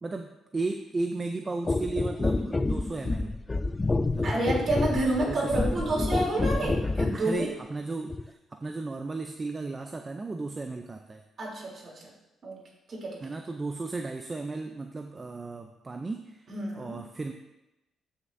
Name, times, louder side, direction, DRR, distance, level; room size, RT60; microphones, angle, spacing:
voice 1, 0.0-3.3 4.1-4.4 5.3-6.0 7.1-11.2 13.2-16.4 16.7-17.3, right 3 dB, 25° right, 5 dB, 0.5 m, -35 dB
sound 1, 1.7-7.2 8.1-8.3, left 2 dB, 20° left, 0.4 m, -28 dB
voice 2, 4.2-7.5 11.4-12.0 12.4-12.6 12.9-13.2 16.5-17.0, right 1 dB, 45° right, -3 dB, 3.3 m, -29 dB
13.0 x 6.4 x 2.7 m, 0.95 s
cardioid pair, 90°, 0 cm